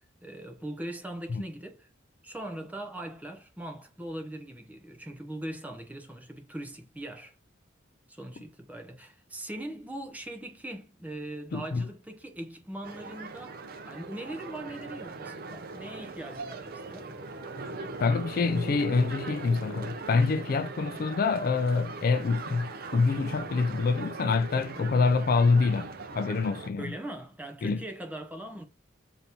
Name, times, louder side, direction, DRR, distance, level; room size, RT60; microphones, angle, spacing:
voice 1, 0.0-1.9 2.2-7.3 8.1-17.1 26.8-28.7, right 1 dB, 10° right, 0.6 m, -40 dB
voice 2, 11.5-11.9 18.0-26.9 27.6-27.8, left 4 dB, 45° left, 0.3 m, -26 dB
sound 1, 12.8-26.7, right 3 dB, 50° right, 0.6 m, -40 dB
3.9 x 2.8 x 3.4 m
head